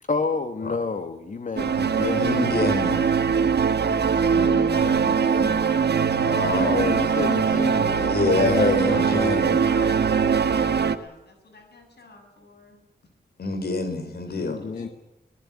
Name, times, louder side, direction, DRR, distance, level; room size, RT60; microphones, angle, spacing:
voice 1, 0.1-2.4 4.8-4.9 5.2-5.7 6.7-9.7 14.4-14.9, left 4 dB, 50° left, 8 dB, 1.5 m, -30 dB
sound 1, 1.6-11.0, right 6 dB, 90° right, 1.6 m, -22 dB
voice 2, 2.1-3.1 6.2-6.8 8.0-9.5 13.4-14.6, left 3 dB, 75° left, 7 dB, 4.8 m, -25 dB
voice 3, 4.3-7.0 8.9-12.8 14.3-14.9, left 2 dB, 90° left, 4 dB, 7.3 m, -41 dB
23.5 x 18.0 x 8.6 m, 0.91 s
wide cardioid pair, 140°, 17 cm